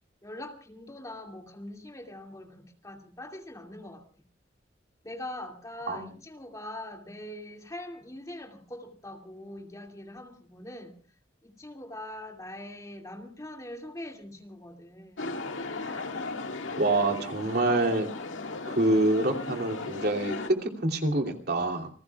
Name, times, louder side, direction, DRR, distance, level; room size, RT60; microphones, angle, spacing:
voice 1, 0.2-4.0 5.0-11.0 11.4-15.4, left 1 dB, 15° left, 3 dB, 2.4 m, -42 dB
sound 1, 15.2-20.5, left 3 dB, 85° left, 1.9 m, -36 dB
voice 2, 16.8-18.1 18.7-21.9, right 2 dB, 55° right, 3 dB, 2.9 m, -26 dB
28.5 x 20.5 x 2.4 m, 0.37 s
head